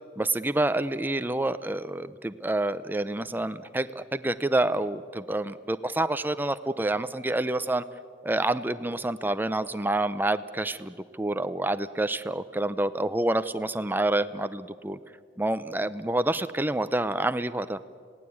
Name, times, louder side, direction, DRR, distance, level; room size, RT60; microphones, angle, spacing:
voice 1, 0.2-7.8 8.2-15.0 15.4-17.8, right 2 dB, 10° right, 12 dB, 0.6 m, -28 dB
27.0 x 18.0 x 8.6 m, 2.1 s
head